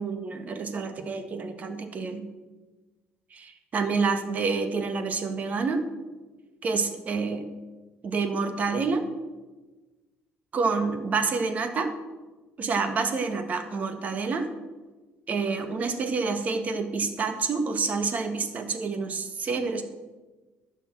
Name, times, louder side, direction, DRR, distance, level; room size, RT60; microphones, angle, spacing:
voice 1, 0.0-2.3 3.3-5.8 6.6-7.4 8.0-9.0 10.5-11.9 12.6-14.5 15.3-19.8, right 4 dB, 40° right, 7 dB, 1.7 m, -28 dB
11.5 x 7.3 x 7.4 m, 1.2 s
cardioid pair, 100°, 4 cm